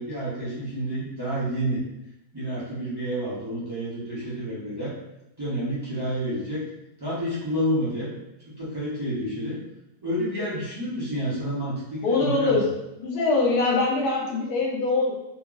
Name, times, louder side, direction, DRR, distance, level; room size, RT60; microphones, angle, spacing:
voice 1, 0.0-1.8 2.3-4.9 5.4-6.6 7.0-8.1 8.6-9.6 10.0-12.6, equal, 20° right, -10 dB, 0.6 m, -29 dB
voice 2, 12.0-12.6 13.0-15.1, left 3 dB, 75° left, -2 dB, 1.1 m, -23 dB
2.8 x 2.3 x 2.4 m, 0.88 s
omnidirectional pair, 1.6 m